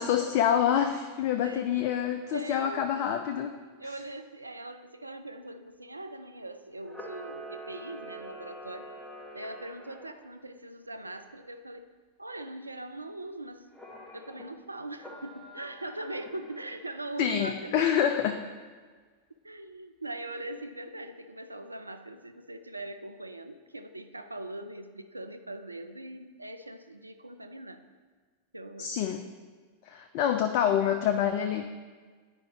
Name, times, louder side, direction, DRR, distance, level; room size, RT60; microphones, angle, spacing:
voice 1, 0.0-3.5 17.2-18.4 28.8-29.2 29.9-31.7, left 9 dB, 45° left, 6 dB, 0.3 m, -27 dB
voice 2, 1.4-1.9 2.3-2.8 3.6-8.9 9.3-11.9 12.2-13.7 14.1-18.0 19.4-27.8 28.5-29.0, right 2 dB, 85° right, 8 dB, 0.3 m, -41 dB
Camera, 6.8-10.1 13.7-14.4 15.0-16.8, right 1 dB, 10° left, 1.0 m, -45 dB
9.7 x 4.9 x 2.9 m, 1.5 s
figure-of-eight pair, 90°, 0 cm